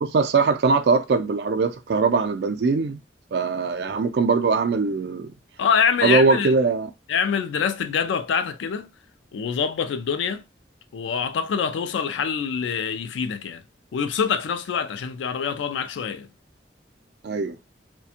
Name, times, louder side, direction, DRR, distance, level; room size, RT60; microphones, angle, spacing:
voice 1, 0.0-3.0 3.3-5.3 6.0-6.9 17.2-17.6, right 4 dB, 65° right, 0.4 m, -21 dB
voice 2, 5.6-6.5 7.1-8.9 9.3-10.4 10.9-13.6 13.9-16.3, left 6 dB, 85° left, 0.3 m, -25 dB
2.4 x 2.2 x 2.7 m
head